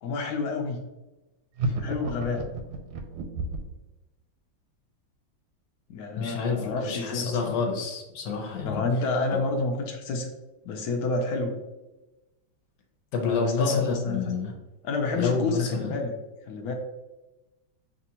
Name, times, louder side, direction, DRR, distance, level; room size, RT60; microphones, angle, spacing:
voice 1, 0.0-0.8 1.6-2.5 5.9-7.6 8.6-10.3 10.6-11.6 13.2-14.4 14.8-16.2 16.5-16.7, left 3 dB, 80° left, 2 dB, 0.8 m, -29 dB
sound 1, 1.6-3.8, right 2 dB, 90° right, 1.4 m, -31 dB
voice 2, 6.2-8.8 13.1-14.5 15.1-15.9, left 4 dB, 60° left, 2 dB, 1.0 m, -28 dB
5.9 x 2.5 x 2.8 m, 1.0 s
omnidirectional pair, 2.2 m